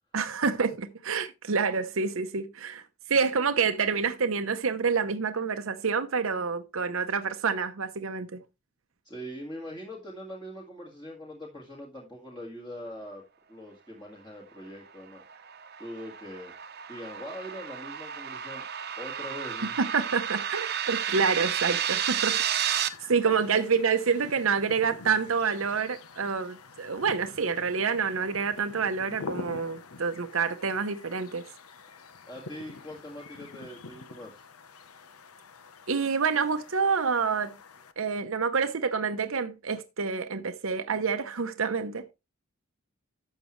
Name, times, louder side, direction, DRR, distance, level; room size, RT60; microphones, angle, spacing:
voice 1, 0.1-8.4 19.8-22.4 23.1-31.5 35.9-37.5 38.0-42.1, right 5 dB, 70° right, 0.8 m, -28 dB
voice 2, 9.0-13.2 13.5-15.2 15.8-16.5 16.9-18.6 19.0-19.8 23.0-23.3 32.3-34.5, equal, 20° left, 2.0 m, -42 dB
sound 1, 15.2-22.9, right 9 dB, 45° right, 0.9 m, -32 dB
sound 2, 22.9-37.9, left 4 dB, 90° left, 1.0 m, -46 dB
12.5 x 7.5 x 3.2 m
head